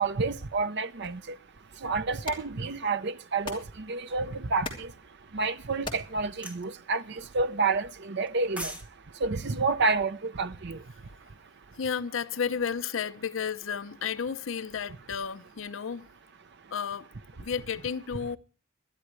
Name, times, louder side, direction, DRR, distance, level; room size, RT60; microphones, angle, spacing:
voice 1, 0.0-1.4 1.8-4.9 5.3-8.7 9.2-10.8, right 4 dB, 60° right, 0.8 m, -29 dB
sound 1, 1.0-7.1, left 3 dB, 25° left, 3.0 m, -45 dB
sound 2, 6.4-6.6 8.3-8.9 9.2-9.4, equal, 5° right, 1.4 m, -38 dB
voice 2, 11.7-16.1 16.7-17.1 17.4-18.4, left 7 dB, 70° left, 0.6 m, -32 dB
21.5 x 12.0 x 3.1 m
head